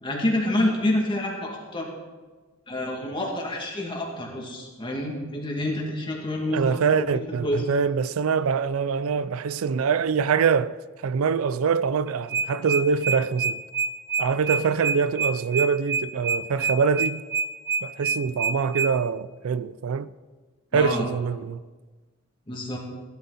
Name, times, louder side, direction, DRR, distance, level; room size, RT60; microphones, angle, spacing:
voice 1, 0.0-1.9 2.7-7.7 20.7-21.1 22.5-22.8, left 1 dB, 25° left, 2.3 m, -28 dB
voice 2, 6.5-13.6 14.2-17.2 17.8-20.1 20.7-21.6, right 6 dB, 90° right, 0.4 m, -24 dB
sound 1, 12.1-18.9, right 5 dB, 55° right, 0.8 m, -26 dB
16.0 x 12.0 x 4.2 m
head